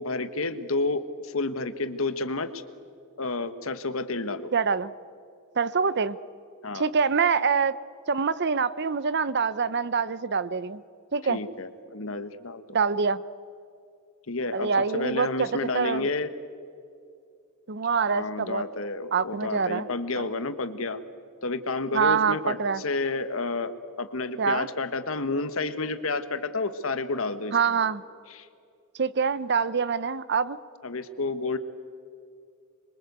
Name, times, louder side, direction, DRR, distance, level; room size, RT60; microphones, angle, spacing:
voice 1, 0.0-2.6 3.2-4.5 6.6-6.9 11.2-12.6 14.3-16.3 18.0-21.0 21.4-27.8 28.3-28.5 30.8-31.6, left 3 dB, 70° left, 11 dB, 1.4 m, -30 dB
voice 2, 4.5-4.9 5.6-6.2 6.7-7.8 8.1-10.8 11.1-11.4 12.7-13.2 14.5-15.5 15.7-16.1 17.7-18.6 19.1-19.9 20.2-20.3 21.9-22.8 24.4-24.7 27.5-28.0 29.0-30.6, right 5 dB, 50° right, 17 dB, 0.7 m, -25 dB
26.5 x 23.0 x 8.1 m, 2.4 s
head